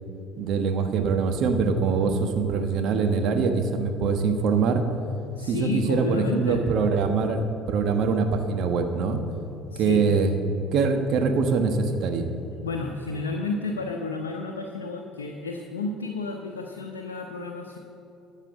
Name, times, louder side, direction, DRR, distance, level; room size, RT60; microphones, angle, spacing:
voice 1, 0.4-4.8 5.5-9.2 9.8-10.3 10.7-12.3, right 5 dB, 55° right, 6 dB, 1.2 m, -23 dB
voice 2, 5.3-6.6 9.7-10.0 12.6-17.8, left 3 dB, 85° left, 2 dB, 0.7 m, -31 dB
12.5 x 5.7 x 7.7 m, 2.8 s
hypercardioid pair, 65°, 0 cm